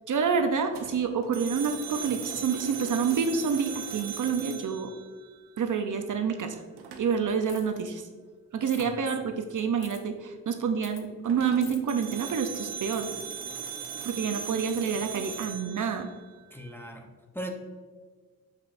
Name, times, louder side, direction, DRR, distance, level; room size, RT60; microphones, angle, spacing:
voice 1, 0.1-4.9 5.6-6.6 7.0-8.1 8.5-13.1 14.0-16.1, right 6 dB, 55° right, 6 dB, 0.7 m, -28 dB
sound 1, 0.7-5.7 6.8-7.3 11.2-16.7, right 7 dB, 85° right, 0.8 m, -39 dB
sound 2, 7.5-7.8 8.7-8.9 9.8-10.0 10.8-11.0 11.6-11.8 12.9-13.1, left 8 dB, 75° left, 0.8 m, -47 dB
voice 2, 16.5-17.5, right 1 dB, 5° left, 2 dB, 0.8 m, -39 dB
7.4 x 5.5 x 2.6 m, 1.5 s
cardioid pair, 85°, 38 cm